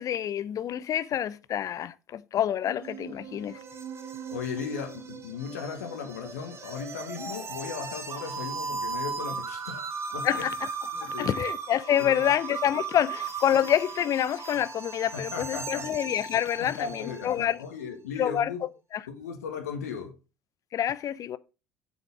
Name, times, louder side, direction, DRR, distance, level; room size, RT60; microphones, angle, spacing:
voice 1, 0.0-3.6 10.2-10.7 11.0-17.6 18.2-19.0 20.7-21.4, left 10 dB, 40° left, 0.7 m, -27 dB
sound 1, 2.6-7.6, right 10 dB, 55° right, 0.8 m, -45 dB
sound 2, 2.8-17.4, right 5 dB, 30° right, 1.8 m, -37 dB
voice 2, 4.3-9.9 10.1-10.3 10.9-11.4 12.0-12.3 13.5-13.6 15.1-15.9 16.6-18.6 19.1-20.1, left 6 dB, 75° left, 1.8 m, -37 dB
7.6 x 6.5 x 5.9 m
figure-of-eight pair, 60°, 8 cm